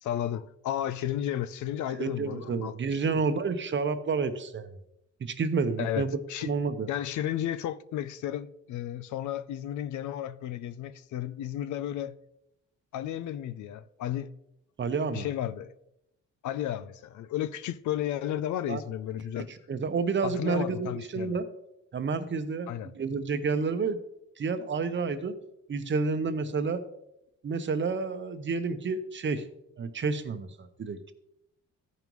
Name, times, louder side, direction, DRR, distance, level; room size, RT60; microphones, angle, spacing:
voice 1, 0.0-2.8 3.1-3.2 5.8-6.5 6.9-12.2 12.9-14.3 15.1-15.7 16.4-19.5 20.2-21.4 22.7-22.9, left 11 dB, 75° left, 0.6 m, -33 dB
voice 2, 2.0-4.7 5.2-6.1 6.4-6.9 14.8-15.3 18.7-18.8 19.7-21.4 21.9-24.0 24.4-25.4 25.7-26.8 27.4-29.4 29.8-31.1, right 4 dB, 40° right, 0.9 m, -30 dB
14.0 x 5.3 x 3.1 m
cardioid pair, 90°, 30 cm